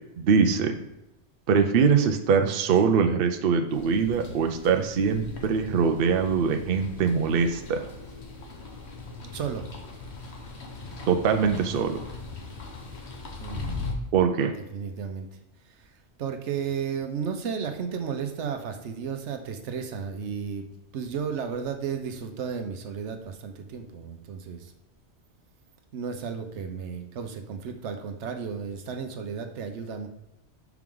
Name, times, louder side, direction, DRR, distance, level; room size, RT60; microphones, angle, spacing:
voice 1, 0.2-0.8 1.5-7.8 11.1-12.0 14.1-14.5, right 6 dB, 60° right, 6 dB, 0.7 m, -23 dB
sound 1, 3.7-13.9, left 4 dB, 70° left, 1.3 m, -40 dB
voice 2, 9.2-9.7 13.4-13.8 14.7-15.3 16.2-20.6 20.9-24.7 25.9-30.1, right 6 dB, 80° right, 6 dB, 1.0 m, -33 dB
6.0 x 4.6 x 3.7 m, 0.88 s
omnidirectional pair, 1.2 m